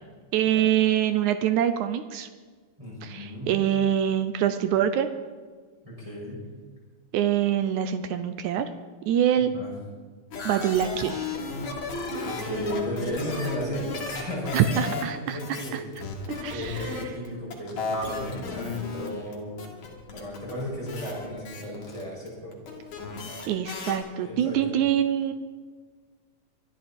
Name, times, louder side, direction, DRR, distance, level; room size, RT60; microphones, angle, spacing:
voice 1, 0.3-2.3 3.0-5.1 7.1-8.7 9.1-9.5 10.4-11.3 14.5-15.8 16.3-17.0 23.5-25.3, right 10 dB, 85° right, 10 dB, 1.7 m, -25 dB
voice 2, 2.8-3.6 5.8-6.4 9.5-9.7 12.2-16.1 16.5-19.6 20.1-22.5 24.1-24.6, equal, 10° right, -6 dB, 6.3 m, -34 dB
sound 1, 10.3-24.0, left 3 dB, 50° left, 3.7 m, -34 dB
25.0 x 12.0 x 4.4 m, 1.5 s
omnidirectional pair, 4.3 m